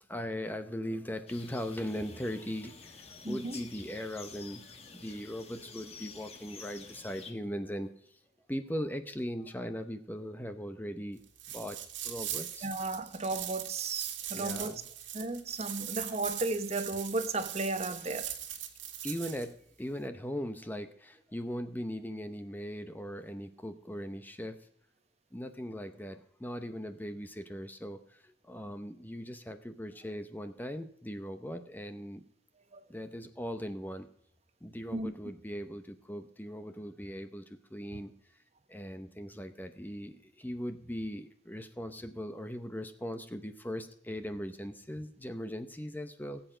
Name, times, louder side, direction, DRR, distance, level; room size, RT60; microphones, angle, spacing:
voice 1, 0.1-4.6 4.9-8.2 8.5-11.2 11.5-11.8 12.0-12.7 14.3-14.9 19.0-24.6 25.3-32.2 32.9-34.1 34.6-38.4 38.7-46.4, equal, 10° left, 0.7 m, -39 dB
sound 1, 1.3-7.3, left 5 dB, 35° left, 1.5 m, -50 dB
voice 2, 3.2-3.6 12.6-14.7 15.1-18.3 32.7-32.8 34.9-35.1, right 2 dB, 35° right, 0.9 m, -34 dB
sound 2, 11.4-19.5, right 11 dB, 80° right, 1.9 m, -40 dB
18.5 x 8.0 x 5.0 m
head